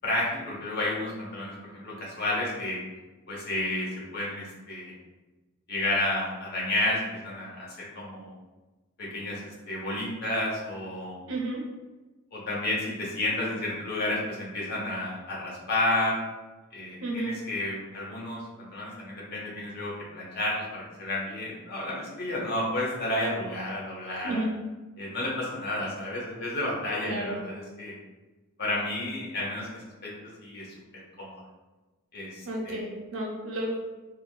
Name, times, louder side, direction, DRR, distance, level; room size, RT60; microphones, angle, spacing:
voice 1, 0.0-2.8 3.3-3.9 4.1-4.9 5.7-8.3 9.0-11.2 12.3-16.2 16.7-24.5 25.0-27.9 28.6-30.1 30.4-30.6 31.2-31.4 32.1-32.8, left 1 dB, 50° left, -5 dB, 0.9 m, -31 dB
voice 2, 11.3-11.6 17.0-17.3 24.2-24.5 27.0-27.4 32.4-33.8, right 1 dB, 80° right, -2 dB, 0.7 m, -31 dB
3.4 x 2.2 x 2.3 m, 1.2 s
head